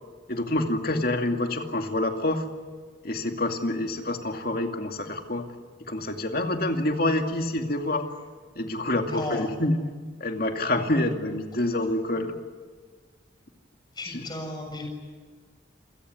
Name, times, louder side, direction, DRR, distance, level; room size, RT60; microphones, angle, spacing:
voice 1, 0.3-2.5 3.0-5.5 5.9-8.0 8.6-9.8 10.2-12.3 14.0-14.3, left 1 dB, 50° left, 4 dB, 2.4 m, -27 dB
voice 2, 9.1-9.4 13.9-14.9, left 1 dB, 20° left, 2 dB, 6.8 m, -34 dB
27.5 x 17.5 x 9.7 m, 1.5 s
head